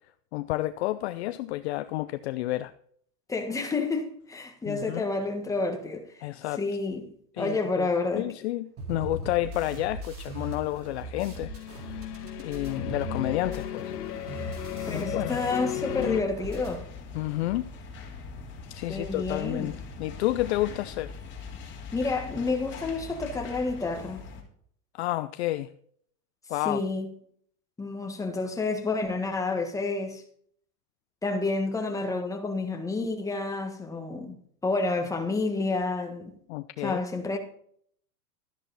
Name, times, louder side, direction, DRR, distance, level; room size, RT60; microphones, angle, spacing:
voice 1, 0.3-2.7 4.6-5.0 6.2-6.6 7.4-12.0 12.4-13.9 14.9-15.4 17.1-17.7 18.7-21.1 24.9-25.7 26.5-26.8 36.5-37.0, left 17 dB, 45° left, 0.5 m, -30 dB
voice 2, 3.3-6.2 6.6-8.3 14.9-16.8 18.9-19.7 21.9-24.2 26.6-27.1 27.8-30.2 31.2-34.4 34.6-36.3 36.8-37.4, left 3 dB, 5° left, 1.5 m, -29 dB
sound 1, 8.8-16.0 16.3-16.8, right 2 dB, 25° right, 3.9 m, -39 dB
sound 2, 11.1-16.2, left 12 dB, 70° left, 1.7 m, -35 dB
sound 3, 15.8-24.4, left 4 dB, 25° left, 3.0 m, -42 dB
12.5 x 10.5 x 4.0 m
supercardioid pair, 140°, 48 cm